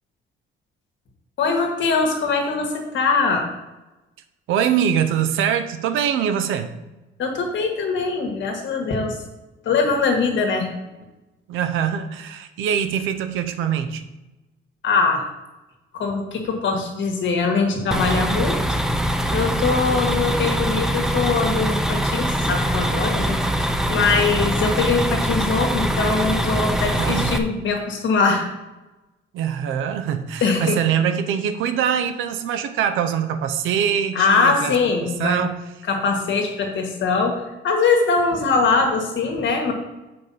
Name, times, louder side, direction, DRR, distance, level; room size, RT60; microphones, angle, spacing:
voice 1, 1.4-3.5 7.2-9.1 9.6-10.7 14.8-15.2 15.9-18.6 19.3-28.4 30.4-30.8 34.1-35.4 35.9-39.7, left 4 dB, 70° left, 3 dB, 1.7 m, -22 dB
voice 2, 4.5-6.7 11.5-14.0 26.8-27.3 29.3-34.7 35.0-35.6, right 8 dB, 90° right, 9 dB, 0.7 m, -23 dB
sound 1, 17.9-27.4, right 1 dB, 5° right, 0.6 m, -23 dB
6.9 x 4.9 x 5.6 m, 1.1 s
cardioid pair, 90°, 20 cm